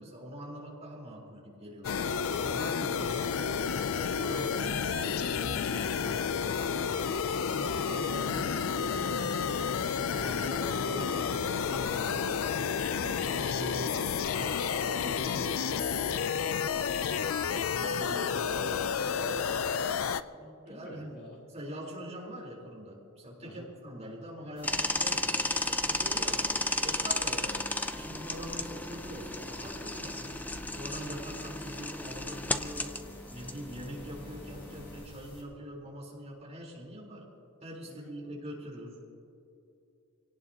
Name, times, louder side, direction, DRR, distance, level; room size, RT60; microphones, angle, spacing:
voice 1, 0.0-2.0 2.4-6.9 7.5-9.4 9.8-12.7 13.0-17.2 17.7-18.5 20.7-21.2 21.5-26.6 26.8-27.7 27.9-33.0 33.3-37.3 37.6-39.0, equal, 30° right, -3 dB, 4.0 m, -43 dB
sound 1, 1.8-20.2, left 6 dB, 75° left, 0.5 m, -31 dB
voice 2, 17.4-20.1 20.4-21.4 23.4-23.7 37.9-38.4, equal, 50° left, -2 dB, 3.1 m, -48 dB
sound 2, 24.6-35.4, left 1 dB, 25° left, 3.5 m, -51 dB
sound 3, 24.6-35.0, left 2 dB, 10° left, 0.6 m, -34 dB
27.0 x 18.0 x 2.9 m, 2.7 s
head